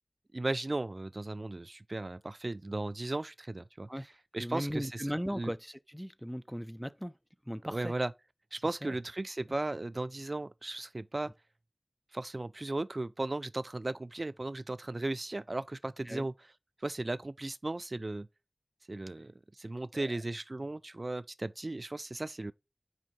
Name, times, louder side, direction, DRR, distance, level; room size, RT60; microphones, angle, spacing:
voice 1, 0.3-3.9 4.3-5.1 5.3-5.5 7.7-8.1 8.5-11.3 12.1-16.3 16.8-18.3 18.9-22.5, right 2 dB, 70° right, 0.3 m, -36 dB
voice 2, 3.9-7.1 7.5-7.9 8.8-8.9 16.1-16.3 19.9-20.2, equal, 5° right, 0.5 m, -38 dB
6.2 x 4.6 x 4.1 m
wide cardioid pair, 40°, 0 cm